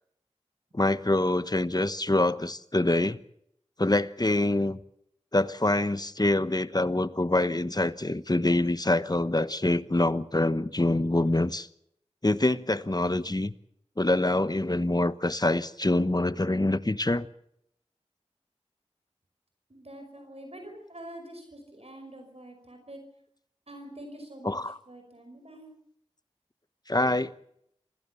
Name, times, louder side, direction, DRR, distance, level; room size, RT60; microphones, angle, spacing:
voice 1, 0.7-3.2 3.8-4.8 5.3-11.7 12.2-13.5 14.0-17.3 24.4-24.8 26.9-27.3, left 2 dB, 35° left, 1.1 m, -25 dB
voice 2, 19.7-23.0 23.7-24.6 24.9-25.7, right 1 dB, 60° right, 5.4 m, -45 dB
26.5 x 16.5 x 7.1 m
wide cardioid pair, 40°, 12 cm